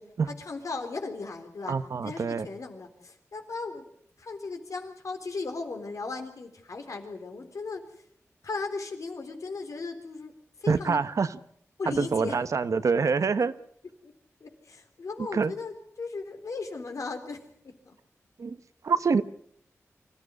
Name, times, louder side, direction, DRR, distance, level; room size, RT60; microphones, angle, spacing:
voice 1, 0.4-1.7 2.0-3.9 4.2-8.0 8.4-10.3 10.6-11.0 11.8-12.4 14.0-14.1 14.4-18.0, left 3 dB, 85° left, 3.8 m, -37 dB
voice 2, 1.7-2.5 10.7-11.4 11.9-13.5 15.3-15.5 18.4-18.6 18.8-19.2, right 5 dB, 85° right, 1.1 m, -25 dB
25.5 x 14.5 x 9.6 m
cardioid pair, 55°, 5 cm